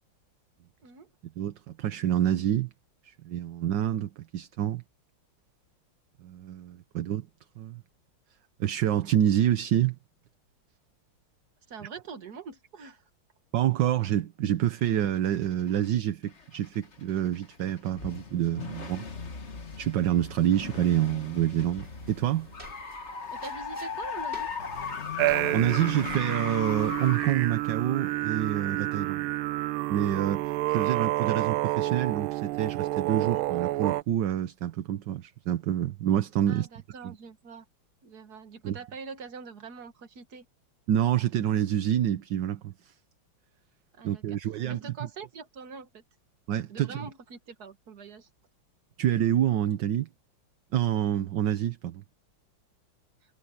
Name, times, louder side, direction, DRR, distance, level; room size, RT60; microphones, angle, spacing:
voice 1, 1.4-2.7 3.0-4.8 6.2-7.3 7.6-7.8 8.6-10.0 13.5-19.0 19.8-22.5 25.5-29.3 29.9-36.7 37.0-37.1 38.6-38.8 40.9-42.9 44.0-45.1 46.5-47.0 49.0-50.1 50.7-52.0, right 11 dB, 70° right, 1.5 m, -27 dB
voice 2, 11.7-13.0 23.3-24.5 36.5-37.6 38.0-40.5 43.9-44.4 44.6-46.0 46.7-48.3, right 5 dB, 50° right, 2.1 m, -44 dB
sound 1, 14.7-15.9 16.3-28.8, left 5 dB, 35° left, 1.8 m, -38 dB
sound 2, 21.8-27.0, right 1 dB, 30° right, 5.4 m, -51 dB
sound 3, 25.2-34.0, right 17 dB, 90° right, 1.4 m, -29 dB
omnidirectional pair, 2.2 m